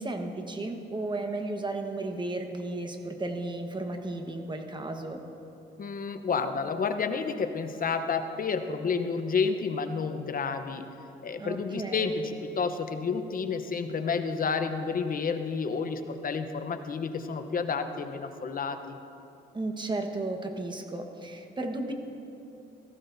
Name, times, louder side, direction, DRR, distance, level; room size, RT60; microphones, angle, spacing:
voice 1, 0.0-5.2 11.4-12.1 19.5-21.9, right 2 dB, 25° right, 4 dB, 1.3 m, -34 dB
voice 2, 5.8-10.8 11.2-19.0, left 5 dB, 45° left, 8 dB, 0.9 m, -30 dB
17.0 x 14.5 x 2.7 m, 2.8 s
cardioid pair, 90°, 20 cm